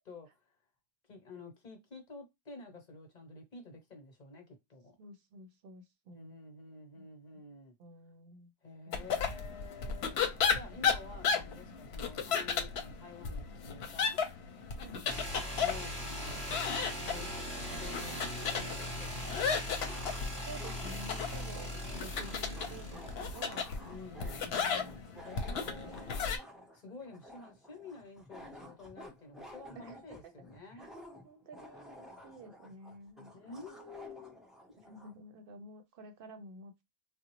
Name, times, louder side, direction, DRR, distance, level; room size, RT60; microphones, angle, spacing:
voice 1, 0.0-0.5 1.1-5.0 6.1-7.7 8.6-10.2 10.5-14.2 15.6-20.0 23.8-30.9 33.3-34.4, left 3 dB, 45° left, 0.9 m, -50 dB
voice 2, 5.0-6.3 6.9-7.1 7.8-8.5 8.9-9.2 14.8-15.0 20.4-25.1 25.6-25.9 29.8-30.0 30.7-33.6 34.8-36.8, right 1 dB, 65° right, 0.7 m, -51 dB
sound 1, 8.9-26.4, left 6 dB, 80° left, 0.8 m, -35 dB
sound 2, 15.1-23.8, equal, 20° right, 1.0 m, -40 dB
sound 3, 18.8-18.9 19.8-35.2, equal, ahead, 0.4 m, -52 dB
3.7 x 2.0 x 2.9 m
omnidirectional pair, 1.1 m